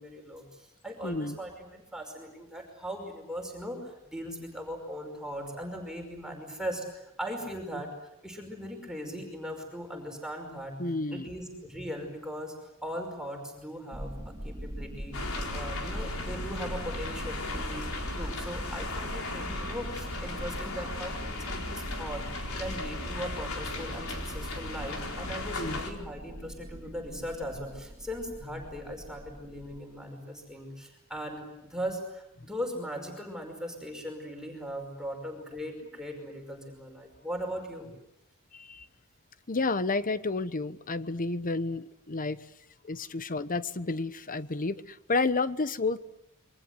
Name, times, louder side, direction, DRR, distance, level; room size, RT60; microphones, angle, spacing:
voice 1, 0.0-7.9 8.2-10.7 11.1-12.5 12.8-22.2 22.6-37.9 43.0-43.1, equal, 5° right, 2 dB, 5.4 m, -39 dB
voice 2, 1.0-1.4 7.7-7.8 10.8-11.3 25.6-25.8 38.5-38.9 39.5-42.5 42.8-46.0, left 3 dB, 40° left, 14 dB, 1.0 m, -31 dB
sound 1, 13.9-29.8, right 1 dB, 25° right, 2.5 m, -41 dB
sound 2, 15.1-25.9, left 2 dB, 70° left, 4.4 m, -37 dB
28.0 x 24.0 x 8.1 m, 0.86 s
head